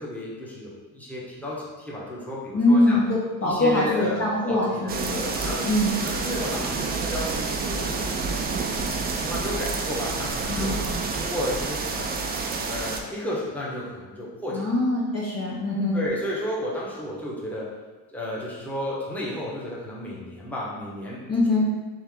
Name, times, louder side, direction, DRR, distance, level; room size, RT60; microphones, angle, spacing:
voice 1, 0.0-3.0 3.4-5.6 6.0-8.4 9.2-10.8 11.1-12.1 12.6-14.8 15.9-17.7 18.1-21.3, left 1 dB, 5° left, -6 dB, 1.0 m, -32 dB
voice 2, 2.5-5.2 5.6-6.0 10.5-10.9 14.5-16.0 21.3-21.6, left 1 dB, 35° left, -4 dB, 0.7 m, -23 dB
sound 1, 4.9-13.0, right 4 dB, 25° right, 0.3 m, -28 dB
3.3 x 2.8 x 3.5 m, 1.3 s
supercardioid pair, 95°, 44 cm